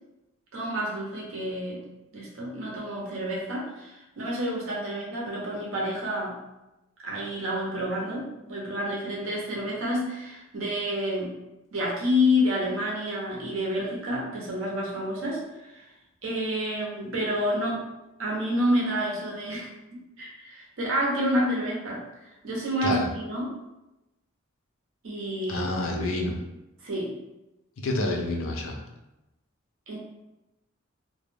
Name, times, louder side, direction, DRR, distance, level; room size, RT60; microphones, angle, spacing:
voice 1, 0.5-1.8 2.1-6.4 7.0-11.3 11.7-15.8 16.2-17.8 18.2-22.0 22.4-23.5 25.0-25.8 26.8-27.1 29.9-30.0, equal, 80° right, -3 dB, 0.8 m, -29 dB
voice 2, 25.5-26.3 27.8-28.8, left 1 dB, 80° left, 1 dB, 0.5 m, -28 dB
2.3 x 2.2 x 3.3 m, 0.97 s
head